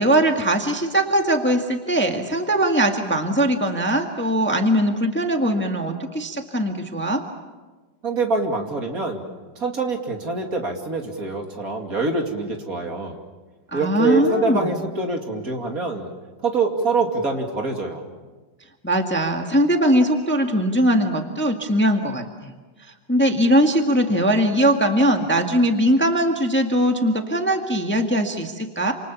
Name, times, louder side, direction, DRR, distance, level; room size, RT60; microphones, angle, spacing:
voice 1, 0.0-7.2 13.7-14.8 18.8-22.5 23.1-28.9, right 1 dB, 5° left, 4 dB, 1.7 m, -20 dB
voice 2, 8.0-9.2 9.6-13.2 13.7-16.1 16.4-18.0, right 3 dB, 50° right, 3 dB, 3.0 m, -25 dB
28.5 x 27.0 x 7.2 m, 1.3 s
omnidirectional pair, 2.0 m